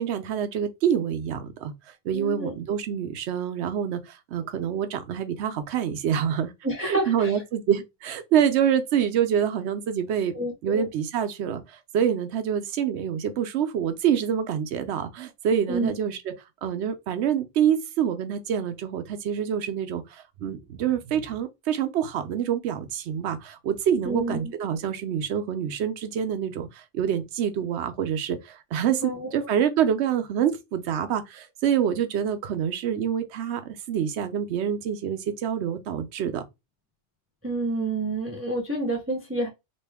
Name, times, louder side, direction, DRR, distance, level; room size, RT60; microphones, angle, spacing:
voice 1, 0.0-1.7 2.0-6.5 6.8-10.3 10.6-16.3 16.6-36.4, right 8 dB, 75° right, 0.9 m, -26 dB
voice 2, 2.1-2.5 6.6-7.4 10.3-10.9 15.7-15.9 24.0-24.5 29.0-29.3 37.4-39.5, right 2 dB, 15° right, 0.6 m, -28 dB
3.0 x 2.5 x 3.4 m
omnidirectional pair, 1.2 m